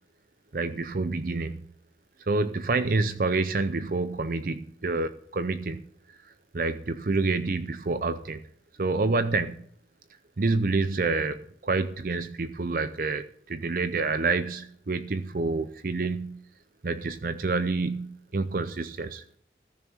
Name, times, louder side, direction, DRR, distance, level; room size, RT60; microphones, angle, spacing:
voice 1, 0.5-1.6 2.3-5.8 6.5-8.4 8.8-9.6 10.4-16.4 16.8-19.2, right 3 dB, 50° right, 11 dB, 0.6 m, -28 dB
14.5 x 6.4 x 7.2 m, 0.63 s
head